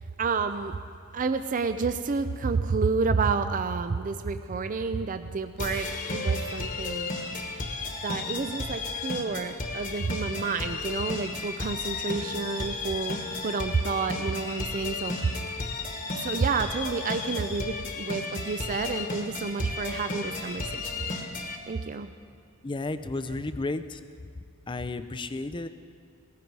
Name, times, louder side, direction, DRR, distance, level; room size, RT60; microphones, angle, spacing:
voice 1, 0.2-0.7 1.1-7.1 8.0-15.5 16.2-21.3 21.7-22.1, right 4 dB, 35° right, 9 dB, 0.4 m, -29 dB
sound 1, 5.6-21.6, left 3 dB, 40° left, 1.4 m, -34 dB
voice 2, 22.6-24.0 24.7-25.7, left 2 dB, 20° left, 10 dB, 0.5 m, -32 dB
18.0 x 15.0 x 4.7 m, 2.3 s
head